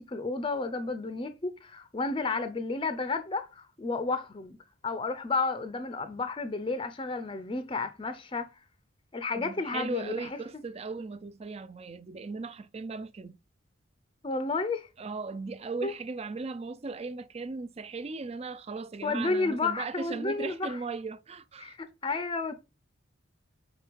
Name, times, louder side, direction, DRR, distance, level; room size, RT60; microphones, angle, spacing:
voice 1, 0.0-4.6 4.8-8.5 9.1-10.3 14.2-14.9 15.8-15.9 19.0-20.8 21.6-22.5, left 3 dB, 25° left, 0.5 m, -32 dB
voice 2, 9.4-13.4 15.0-21.7, right 4 dB, 30° right, 0.4 m, -37 dB
5.2 x 4.2 x 4.6 m
head